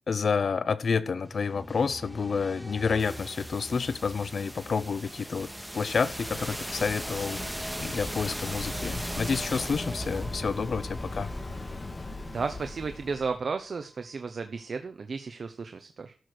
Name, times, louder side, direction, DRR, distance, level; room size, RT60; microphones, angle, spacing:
voice 1, 0.1-7.4 7.8-11.3, left 5 dB, 75° left, 0.8 m, -29 dB
sound 1, 1.2-13.1, equal, 5° right, 1.7 m, -39 dB
Waves surf, 5.7-13.4, left 2 dB, 30° left, 2.1 m, -40 dB
voice 2, 12.3-16.1, right 4 dB, 65° right, 1.0 m, -33 dB
13.0 x 6.3 x 6.5 m
wide cardioid pair, 125°, 0 cm